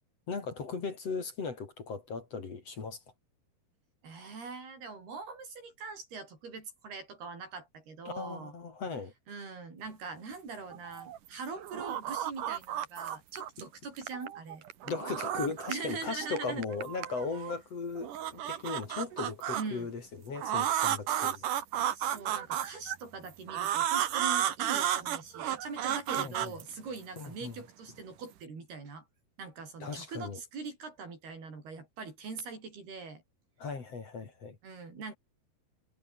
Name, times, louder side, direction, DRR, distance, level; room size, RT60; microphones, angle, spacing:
voice 1, 0.3-3.0 8.0-9.1 14.8-21.5 26.2-26.5 27.2-27.6 29.8-30.4 33.6-34.6, left 4 dB, 40° left, 3.9 m, -37 dB
voice 2, 4.0-8.5 9.3-14.6 15.7-16.7 19.5-19.9 21.3-21.4 21.9-29.1 29.4-33.2 34.6-35.1, right 4 dB, 80° right, 9.5 m, -42 dB
sound 1, 10.7-11.3 11.6-13.6 14.0-15.9 16.2-17.5 18.0-19.6 20.4-23.0 23.5-27.3, right 11 dB, 60° right, 3.0 m, -33 dB
omnidirectional pair, 4.5 m